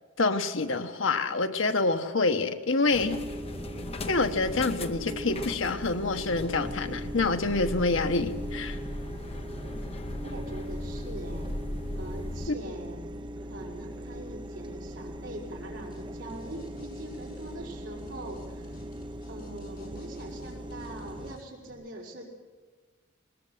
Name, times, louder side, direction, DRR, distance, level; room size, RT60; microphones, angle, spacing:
voice 1, 0.2-3.2 4.1-8.8, left 3 dB, 70° left, 7 dB, 1.2 m, -27 dB
sound 1, 2.9-12.5, left 1 dB, 30° left, 0.9 m, -38 dB
sound 2, 3.0-21.4, equal, 25° right, 0.9 m, -40 dB
voice 2, 10.2-11.5 12.0-18.8 19.3-22.3, right 1 dB, 65° right, -2 dB, 5.2 m, -43 dB
sound 3, 15.9-16.0 16.3-21.7, left 1 dB, 50° left, 7.4 m, -53 dB
21.5 x 20.5 x 8.0 m, 1.4 s
head